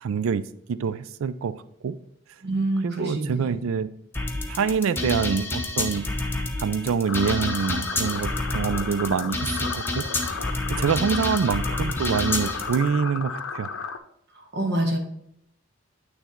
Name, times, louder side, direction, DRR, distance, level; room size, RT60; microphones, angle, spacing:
voice 1, 0.0-1.5 1.8-2.0 2.8-3.9 4.5-6.1 6.6-10.0 10.7-13.7, right 6 dB, 85° right, 15 dB, 0.4 m, -26 dB
voice 2, 2.4-3.6 14.3-15.0, right 1 dB, 60° right, 1 dB, 1.4 m, -26 dB
sound 1, 4.1-12.7, left 2 dB, 10° left, 0.8 m, -29 dB
sound 2, 7.0-14.0, left 5 dB, 90° left, 0.6 m, -34 dB
9.1 x 3.3 x 4.3 m, 0.75 s
head